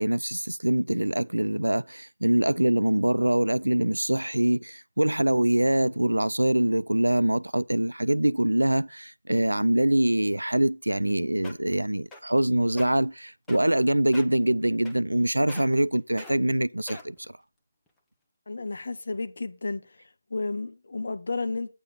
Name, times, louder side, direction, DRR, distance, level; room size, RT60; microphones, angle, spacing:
voice 1, 0.0-17.2, right 1 dB, 80° right, 0.3 m, -24 dB
sound 1, 11.1-11.2 11.4-11.7 12.1-12.4 12.7-12.9 13.5-13.8 14.1-14.4 14.9-15.2 15.5-15.8 16.2-16.4 16.9-17.3 17.9-18.0, left 2 dB, 5° left, 0.9 m, -42 dB
voice 2, 18.5-19.8 20.3-21.7, left 3 dB, 55° left, 1.0 m, -32 dB
8.8 x 6.8 x 4.0 m
figure-of-eight pair, 155°, 0 cm